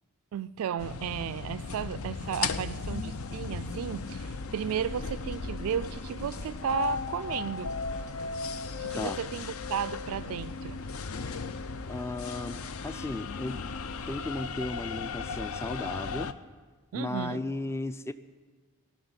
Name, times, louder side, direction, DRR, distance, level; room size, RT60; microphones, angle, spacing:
voice 1, 0.3-7.7 8.8-10.8 16.9-17.4, right 8 dB, 80° right, 0.3 m, -34 dB
sound 1, 0.8-16.3, left 4 dB, 70° left, 0.6 m, -36 dB
sound 2, 2.1-8.9, equal, 35° left, 1.5 m, -51 dB
voice 2, 11.9-12.6 12.8-13.6 14.1-16.3 16.9-18.1, left 2 dB, 10° left, 0.4 m, -35 dB
18.0 x 6.2 x 9.6 m
head